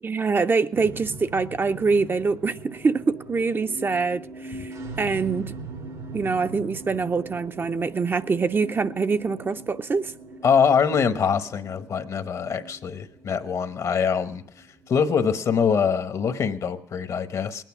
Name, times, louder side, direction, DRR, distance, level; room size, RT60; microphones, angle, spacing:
voice 1, 0.0-5.6 6.1-10.1, right 4 dB, 35° right, 0.5 m, -25 dB
sound 1, 0.7-15.4, right 2 dB, 90° right, 2.3 m, -41 dB
voice 2, 10.4-14.4 14.9-17.6, left 6 dB, 60° left, 1.0 m, -23 dB
19.5 x 9.2 x 6.0 m
cardioid pair, 75°, 6 cm